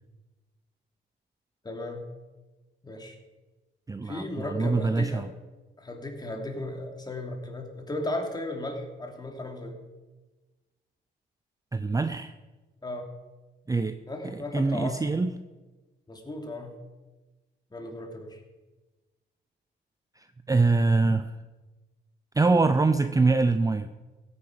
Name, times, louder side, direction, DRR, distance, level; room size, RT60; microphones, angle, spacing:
voice 1, 1.6-2.0 2.8-3.1 4.0-5.2 5.8-9.8 12.8-13.1 14.1-15.1 16.1-16.7 17.7-18.4, left 1 dB, 20° left, 2 dB, 2.8 m, -35 dB
voice 2, 3.9-5.3 11.7-12.3 13.7-14.0 14.2-15.3 20.2-21.3 22.3-23.9, right 3 dB, 15° right, 10 dB, 0.6 m, -24 dB
16.0 x 9.7 x 5.0 m, 1.2 s
cardioid pair, 90°, 20 cm